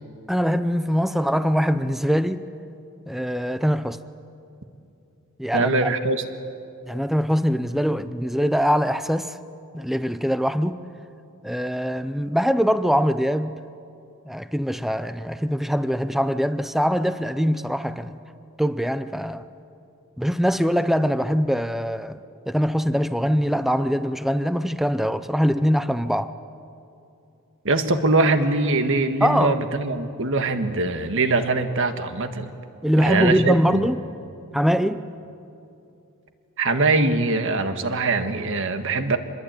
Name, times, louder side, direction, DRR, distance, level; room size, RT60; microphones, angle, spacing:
voice 1, 0.3-2.5 3.1-4.0 5.4-5.9 6.9-9.4 9.7-10.8 11.4-13.6 14.3-18.2 18.6-19.4 20.2-22.2 22.5-26.3 29.2-29.6 32.8-34.0 34.5-35.0, equal, ahead, 0.5 m, -22 dB
voice 2, 5.5-6.2 27.7-32.5 33.0-33.8 36.6-39.2, right 3 dB, 60° right, 1.6 m, -22 dB
26.0 x 21.0 x 9.0 m
head